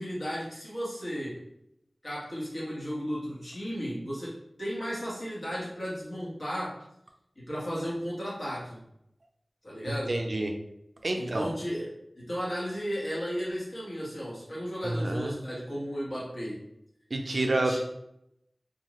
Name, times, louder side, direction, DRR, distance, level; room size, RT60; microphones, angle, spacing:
voice 1, 0.0-1.4 2.0-6.8 7.4-8.8 9.6-10.2 11.2-16.6 17.3-17.8, equal, 75° left, -7 dB, 1.2 m, -34 dB
voice 2, 9.9-10.5 11.0-11.5 14.8-15.3 17.1-17.8, right 2 dB, 75° right, 3 dB, 0.4 m, -29 dB
2.6 x 2.3 x 3.0 m, 0.80 s
wide cardioid pair, 50°, 0 cm